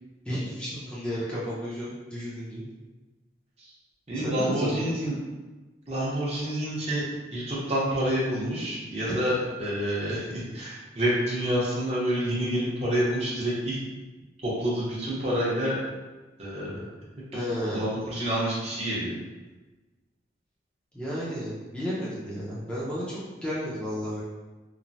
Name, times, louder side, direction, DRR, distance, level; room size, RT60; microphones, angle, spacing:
voice 1, 0.3-2.7 4.1-5.0 9.1-9.2 17.3-17.9 20.9-24.2, equal, 5° left, -8 dB, 0.5 m, -32 dB
voice 2, 4.1-5.1 5.9-7.0 7.3-13.8 14.4-15.8 16.4-16.9 17.7-19.1, equal, 35° right, -7 dB, 0.7 m, -28 dB
3.1 x 2.0 x 2.6 m, 1.2 s
head